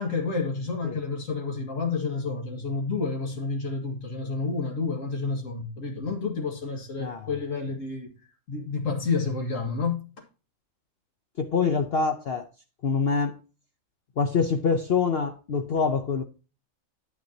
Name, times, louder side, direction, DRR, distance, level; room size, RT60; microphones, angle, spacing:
voice 1, 0.0-8.1 8.5-10.3, left 4 dB, 70° left, 2.2 m, -30 dB
voice 2, 11.4-12.5 12.8-13.4 14.2-16.2, left 5 dB, 55° left, 0.8 m, -25 dB
9.3 x 9.2 x 2.7 m
omnidirectional pair, 1.4 m